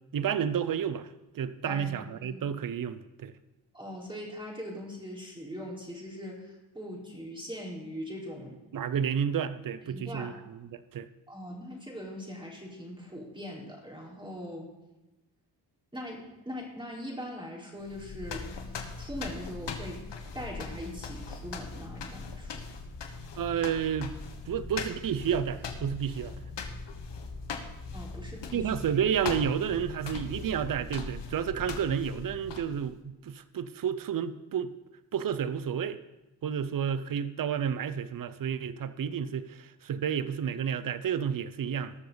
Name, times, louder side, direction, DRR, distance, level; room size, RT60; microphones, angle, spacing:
voice 1, 0.1-1.1 1.3-3.3 8.7-10.3 10.7-11.1 23.3-24.1 24.5-26.3 28.5-34.7 35.1-36.0 36.4-41.9, right 8 dB, 45° right, 13 dB, 0.7 m, -31 dB
voice 2, 3.7-8.6 9.8-10.3 11.3-14.7 15.9-20.0 20.3-22.6 23.0-23.1 27.9-28.7, equal, 10° right, -3 dB, 4.4 m, -41 dB
sound 1, 17.8-32.9, left 4 dB, 60° left, 1.5 m, -40 dB
20.0 x 6.7 x 4.0 m, 1.0 s
cardioid pair, 70°, 47 cm